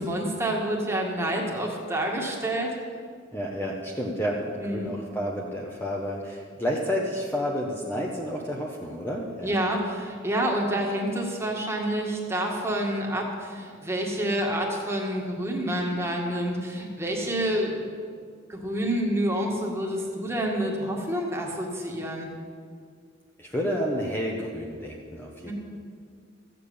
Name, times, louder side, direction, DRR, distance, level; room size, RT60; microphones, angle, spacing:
voice 1, 0.0-2.7 4.6-4.9 9.4-17.9 18.5-22.3 25.5-25.6, right 1 dB, 15° right, -1 dB, 2.0 m, -28 dB
voice 2, 3.3-9.5 23.4-25.5, equal, 10° left, -2 dB, 1.1 m, -30 dB
14.5 x 7.5 x 8.6 m, 2.1 s
head